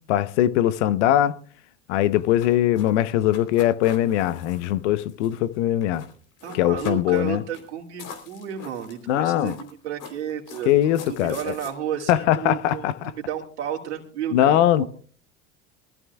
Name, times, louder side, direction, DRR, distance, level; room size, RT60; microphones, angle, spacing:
voice 1, 0.1-1.4 1.9-6.0 6.5-7.4 9.1-9.6 10.7-11.5 12.1-13.1 14.3-14.8, left 12 dB, 80° left, 0.9 m, -21 dB
sound 1, 1.9-5.6 5.8-6.1 6.4-7.3 7.5-7.7 8.0-9.1 9.4-11.7, left 6 dB, 60° left, 3.6 m, -43 dB
voice 2, 6.4-14.9, right 9 dB, 85° right, 2.3 m, -33 dB
23.0 x 14.0 x 2.3 m
hypercardioid pair, 80°, 34 cm